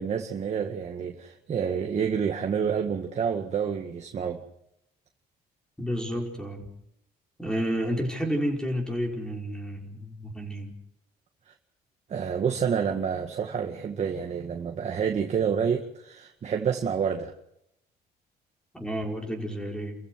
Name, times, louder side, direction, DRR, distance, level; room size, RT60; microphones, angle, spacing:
voice 1, 0.0-4.4 11.5-11.6 12.1-17.3, right 7 dB, 40° right, 3 dB, 1.9 m, -28 dB
voice 2, 5.8-6.7 7.4-10.7 18.7-20.0, equal, 5° left, 1 dB, 5.4 m, -30 dB
29.5 x 15.0 x 6.4 m, 0.78 s
cardioid pair, 110°, 17 cm